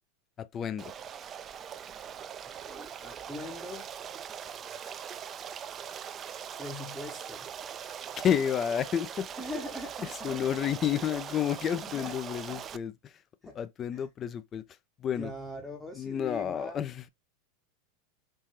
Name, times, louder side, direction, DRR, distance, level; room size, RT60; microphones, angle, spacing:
voice 1, 0.4-0.9 8.2-9.3 10.0-13.2 13.5-14.6 15.0-15.3 15.9-17.1, left 9 dB, 35° left, 0.4 m, -30 dB
Stream, 0.8-12.8, right 8 dB, 35° right, 0.3 m, -41 dB
voice 2, 2.6-3.9 6.6-7.5 9.4-10.5 11.8-12.1 12.4-12.6 13.4-13.6 13.9-14.1 15.2-16.8, left 1 dB, 5° left, 0.8 m, -41 dB
3.6 x 2.7 x 2.9 m
hypercardioid pair, 90°, 0 cm